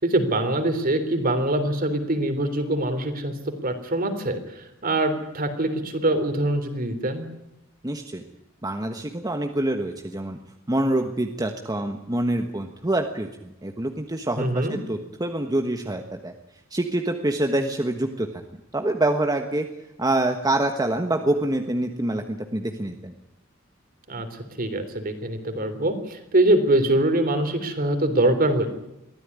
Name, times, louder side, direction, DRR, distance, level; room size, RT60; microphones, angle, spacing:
voice 1, 0.0-7.3 14.4-14.8 24.1-28.7, right 1 dB, 45° right, 8 dB, 3.4 m, -24 dB
voice 2, 7.8-8.2 8.6-10.4 10.7-16.3 16.7-18.3 18.7-19.7 20.0-23.1, right 1 dB, 20° right, 4 dB, 1.3 m, -26 dB
23.0 x 15.5 x 9.7 m, 0.90 s
head